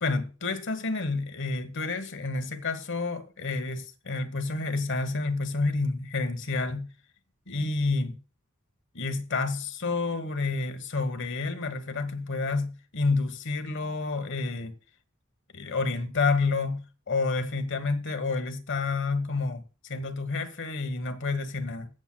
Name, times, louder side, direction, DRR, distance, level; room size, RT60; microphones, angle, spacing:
voice 1, 0.0-6.9 7.5-8.2 8.9-14.7 15.5-19.6 19.9-21.9, left 3 dB, 65° left, 1.2 m, -29 dB
21.0 x 7.4 x 2.2 m
head